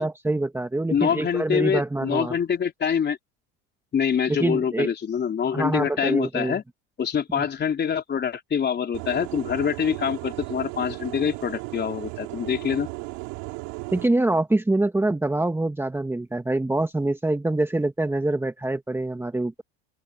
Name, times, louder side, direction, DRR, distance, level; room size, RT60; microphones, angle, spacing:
voice 1, 0.0-2.4 4.3-4.9 5.5-6.6 7.3-7.5 13.9-19.6, right 2 dB, 5° right, 1.6 m, -25 dB
voice 2, 0.9-3.2 3.9-6.6 7.0-12.9, left 7 dB, 30° left, 3.8 m, -25 dB
sound 1, 8.9-14.1, right 29 dB, 75° right, 5.3 m, -35 dB
open air
supercardioid pair, 110°, 32 cm